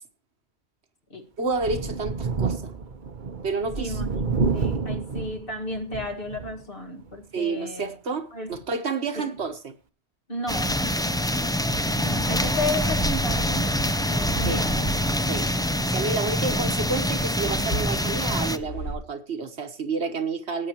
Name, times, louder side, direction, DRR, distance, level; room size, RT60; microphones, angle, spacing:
voice 1, 1.4-2.7 3.4-4.0 7.3-9.7 14.4-14.6 15.3-15.5 15.9-20.7, right 4 dB, 75° right, 1.6 m, -30 dB
Thunder, 1.5-6.6 7.1-7.2 8.5-8.6, right 4 dB, 50° right, 1.0 m, -29 dB
voice 2, 4.5-7.9 8.3-8.5 9.1-9.3 10.3-11.2 12.0-14.9 15.2-15.6, left 2 dB, 55° left, 2.0 m, -34 dB
sound 1, 10.5-18.6, left 1 dB, 5° left, 0.3 m, -25 dB
sound 2, 10.9-19.0, right 1 dB, 80° left, 3.2 m, -36 dB
17.5 x 9.0 x 2.9 m
omnidirectional pair, 1.1 m